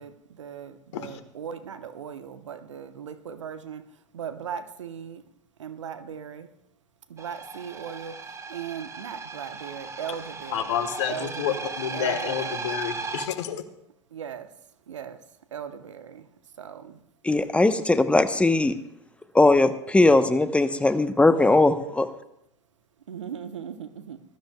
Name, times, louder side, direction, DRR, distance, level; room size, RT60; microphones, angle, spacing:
voice 1, 0.0-3.9 4.1-5.2 5.6-6.5 7.1-10.7 11.1-12.7 14.1-14.5 14.9-15.2 15.5-16.3 16.6-17.0 23.1-24.2, right 8 dB, 85° right, 10 dB, 1.0 m, -38 dB
sound 1, 7.2-13.3, right 4 dB, 20° right, 1.2 m, -36 dB
voice 2, 10.5-13.6, left 9 dB, 70° left, 10 dB, 1.3 m, -29 dB
voice 3, 17.2-18.7 19.3-22.1, left 2 dB, 10° left, 10 dB, 0.9 m, -19 dB
21.0 x 13.0 x 2.3 m, 0.80 s
hypercardioid pair, 90°, 15 cm